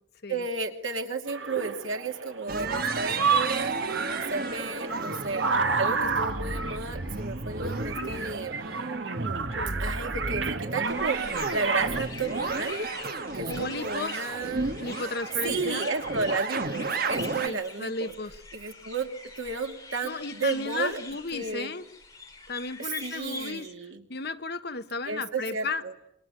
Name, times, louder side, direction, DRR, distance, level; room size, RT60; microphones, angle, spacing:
voice 1, 0.3-3.7 4.1-5.4 5.8-8.7 9.8-12.9 13.3-14.8 15.4-18.1 18.5-21.0 21.3-21.7 22.8-24.0 25.1-25.9, right 4 dB, 85° right, 2.7 m, -33 dB
sound 1, 1.3-12.0, right 5 dB, 65° right, 1.8 m, -31 dB
sound 2, 2.5-17.5, right 3 dB, 50° right, 1.4 m, -33 dB
sound 3, 10.8-23.5, left 3 dB, 15° left, 3.9 m, -44 dB
voice 2, 13.5-14.3 14.8-15.9 17.4-18.4 20.0-21.8 22.5-23.7 24.1-25.8, left 3 dB, 55° left, 1.2 m, -34 dB
27.0 x 23.5 x 9.1 m
head